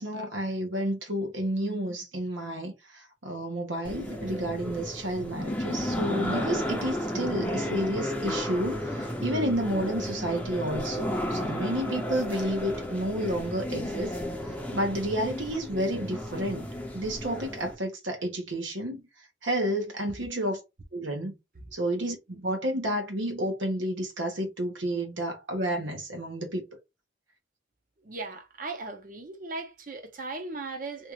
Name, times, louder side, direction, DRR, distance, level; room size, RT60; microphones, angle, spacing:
voice 1, 0.0-14.2 14.5-19.0 19.4-20.6 20.9-21.4 21.7-26.6, right 1 dB, 85° right, 1.0 m, -31 dB
sound 1, 3.8-17.7, equal, 10° left, 0.6 m, -33 dB
voice 2, 28.0-31.1, right 3 dB, 45° right, 0.7 m, -37 dB
2.9 x 2.4 x 2.9 m
head